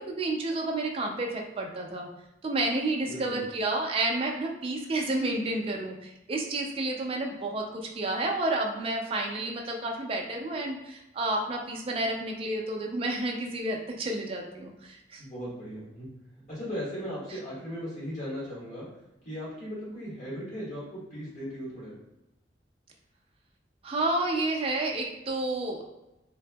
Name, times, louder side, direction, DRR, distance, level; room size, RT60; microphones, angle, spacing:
voice 1, 0.0-2.1 2.4-15.2 23.8-25.8, right 2 dB, 30° right, 1 dB, 0.4 m, -30 dB
voice 2, 3.0-3.4 15.2-16.1 16.5-18.9 19.2-21.9, equal, 45° left, -8 dB, 1.4 m, -37 dB
2.6 x 2.6 x 2.2 m, 0.94 s
head